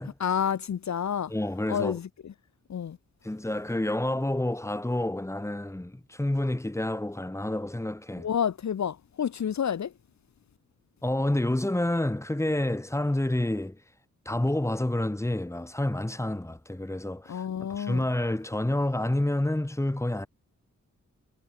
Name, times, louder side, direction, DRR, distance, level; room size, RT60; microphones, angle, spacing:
voice 1, 0.2-1.3 1.7-2.3 2.7-3.0 8.2-9.9 17.3-18.0, left 8 dB, 65° left, 1.3 m, -29 dB
voice 2, 1.3-2.0 3.2-8.3 11.0-13.8 14.3-20.3, left 1 dB, 10° left, 2.3 m, -29 dB
wide cardioid pair, 115°, 30 cm